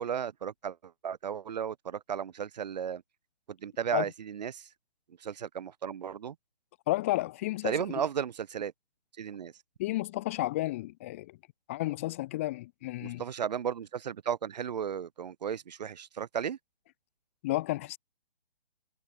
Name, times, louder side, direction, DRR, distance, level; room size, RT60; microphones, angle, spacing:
voice 1, 0.0-3.0 3.5-4.7 5.2-6.4 7.6-8.7 9.2-9.5 13.0-16.6, right 8 dB, 45° right, 1.0 m, -34 dB
voice 2, 6.9-7.8 9.8-11.4 11.7-13.2 17.4-18.0, left 17 dB, 15° left, 0.6 m, -32 dB
figure-of-eight pair, 150°, 29 cm